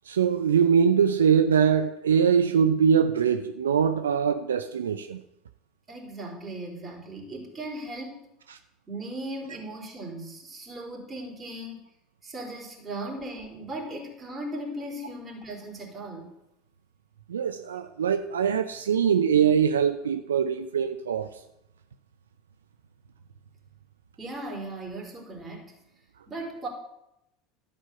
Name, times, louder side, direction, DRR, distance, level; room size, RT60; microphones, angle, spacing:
voice 1, 0.1-5.2 17.3-21.3, right 7 dB, 80° right, 0.5 m, -23 dB
voice 2, 5.9-8.2 8.9-11.8 12.2-16.3 24.2-25.7 26.3-26.7, right 1 dB, 25° right, 3.8 m, -37 dB
12.5 x 5.4 x 6.7 m
figure-of-eight pair, 75°, 0 cm